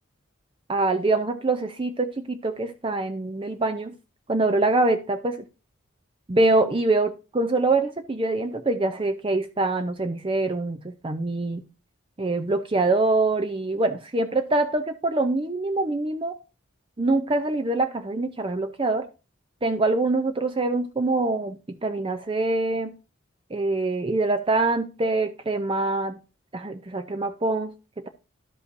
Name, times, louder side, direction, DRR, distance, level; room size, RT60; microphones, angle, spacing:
voice 1, 0.7-3.9 4.3-5.3 6.3-11.6 12.2-16.4 17.0-19.1 19.6-22.9 23.5-26.2 26.5-27.7, right 2 dB, 25° right, 7 dB, 0.5 m, -24 dB
12.5 x 5.5 x 2.6 m, 0.31 s
head